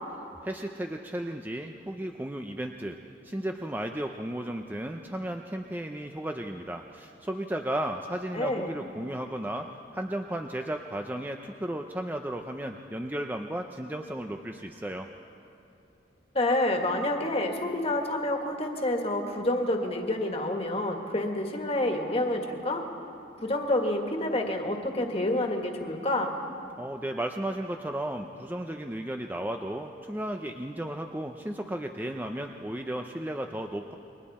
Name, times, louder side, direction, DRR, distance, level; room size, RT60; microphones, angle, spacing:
voice 1, 0.4-3.0 3.2-15.1 26.8-33.9, right 1 dB, 10° right, 4 dB, 0.6 m, -34 dB
voice 2, 8.3-8.7 16.3-22.8 23.4-26.4, left 1 dB, 35° left, 3 dB, 1.8 m, -28 dB
29.5 x 22.5 x 4.3 m, 2.7 s
head